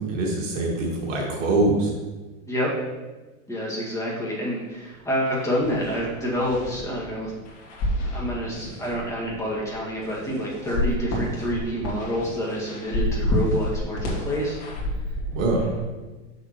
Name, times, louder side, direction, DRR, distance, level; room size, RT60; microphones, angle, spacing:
voice 1, 0.0-1.9 15.3-15.6, right 2 dB, 60° right, -2 dB, 1.8 m, -23 dB
voice 2, 3.5-7.3 8.0-14.6, equal, 5° left, -5 dB, 1.8 m, -28 dB
sound 1, 4.9-5.0 5.2-15.8, left 1 dB, 35° left, 2.2 m, -30 dB
6.8 x 6.5 x 3.0 m, 1.2 s
supercardioid pair, 135°, 42 cm